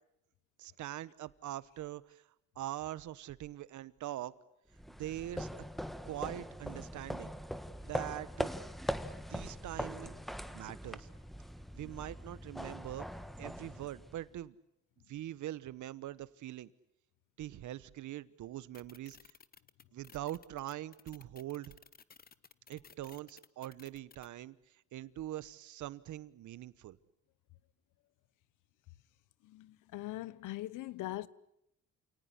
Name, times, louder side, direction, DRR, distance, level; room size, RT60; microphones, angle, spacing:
voice 1, 0.6-2.2 2.6-4.3 5.0-5.5 6.0-7.3 7.8-8.5 9.3-10.2 10.5-11.1 11.7-13.1 13.4-14.6 15.1-16.7 17.4-19.2 19.9-21.7 22.7-24.5 24.9-27.0, right 13 dB, 75° right, 1.1 m, -43 dB
sound 1, 4.7-14.4, equal, ahead, 1.3 m, -41 dB
sound 2, 18.7-24.3, left 6 dB, 30° left, 0.9 m, -57 dB
voice 2, 29.4-31.3, left 16 dB, 85° left, 0.9 m, -41 dB
28.5 x 18.5 x 10.0 m
cardioid pair, 90°, 30 cm